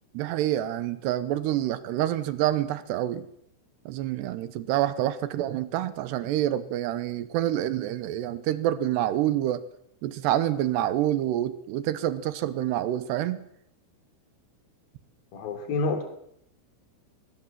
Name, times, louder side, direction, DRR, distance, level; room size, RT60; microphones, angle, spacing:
voice 1, 0.1-3.3 3.9-9.6 10.0-13.4, right 12 dB, 75° right, 14 dB, 2.9 m, -27 dB
voice 2, 15.3-16.0, left 3 dB, 50° left, 6 dB, 4.7 m, -28 dB
22.5 x 19.0 x 7.4 m, 0.74 s
omnidirectional pair, 5.4 m